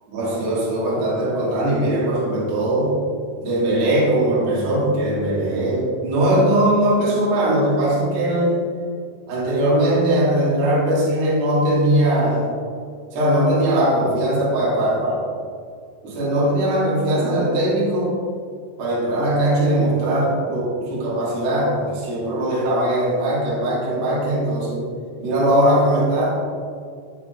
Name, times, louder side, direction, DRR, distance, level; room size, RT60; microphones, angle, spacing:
voice 1, 0.1-3.0 3.4-8.6 9.3-12.5 13.1-15.2 16.0-18.1 18.8-24.9 25.2-26.4, right 1 dB, 55° right, -6 dB, 2.2 m, -20 dB
12.0 x 5.0 x 2.3 m, 2.2 s
omnidirectional pair, 4.5 m